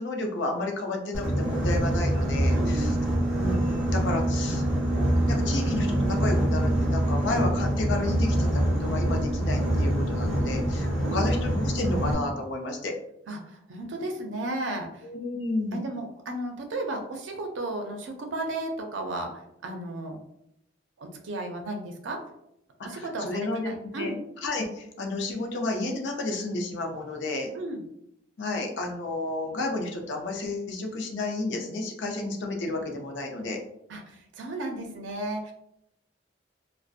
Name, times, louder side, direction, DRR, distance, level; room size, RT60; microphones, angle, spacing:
voice 1, 0.0-3.0 3.3-12.9 15.0-15.9 22.9-24.1 24.4-27.5 28.4-33.6, left 2 dB, 75° left, 2 dB, 0.5 m, -32 dB
Boat Water vehicle, 1.1-12.1, right 1 dB, 5° right, 0.7 m, -25 dB
voice 2, 2.5-3.0 11.0-11.3 13.3-15.0 15.7-20.2 21.0-22.2 22.8-24.2 27.5-27.8 33.9-35.5, right 2 dB, 85° right, 3 dB, 0.5 m, -34 dB
2.6 x 2.1 x 2.4 m, 0.78 s
head